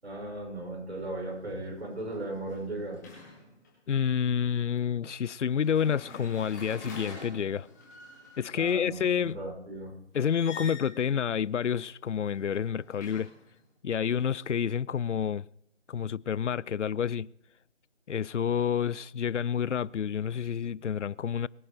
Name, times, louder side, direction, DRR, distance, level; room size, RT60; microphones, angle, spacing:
voice 1, 0.0-3.0 8.5-9.9, right 2 dB, 60° right, 5.9 m, -37 dB
sound 1, 1.0-1.2 1.6-3.7 5.5-8.6 10.2-11.0 12.2-13.6, left 3 dB, 15° left, 3.5 m, -46 dB
voice 2, 3.9-7.7 8.4-9.4 10.1-13.3 13.8-15.5 15.9-17.3 18.1-21.5, left 8 dB, 80° left, 0.5 m, -29 dB
22.5 x 10.0 x 4.5 m
figure-of-eight pair, 165°, 36 cm